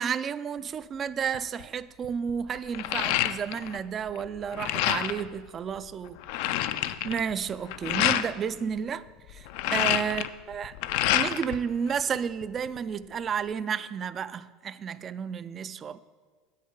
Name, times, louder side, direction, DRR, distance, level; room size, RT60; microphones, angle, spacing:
voice 1, 0.0-6.2 7.0-9.0 9.3-10.7 11.1-16.0, right 7 dB, 30° right, 0.3 m, -32 dB
sound 1, 1.3-1.6 2.0-3.8 4.1-5.3 5.8-5.9 6.0-8.3 9.3-11.6 11.9-12.8, left 13 dB, 70° left, 0.4 m, -28 dB
8.6 x 6.5 x 5.3 m
supercardioid pair, 120°, 0 cm